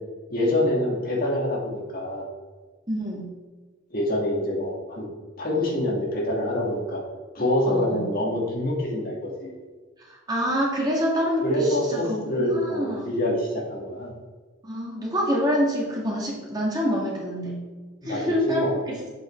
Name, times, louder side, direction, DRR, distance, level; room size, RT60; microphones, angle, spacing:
voice 1, 0.3-2.2 3.9-5.1 5.4-7.0 7.3-9.6 11.4-14.1 18.0-18.7, left 1 dB, 45° left, -3 dB, 2.1 m, -26 dB
voice 2, 2.9-3.2 7.7-8.0 10.1-13.1 14.6-17.6 18.0-19.0, equal, 20° right, -4 dB, 2.0 m, -26 dB
8.0 x 7.9 x 4.5 m, 1.4 s
head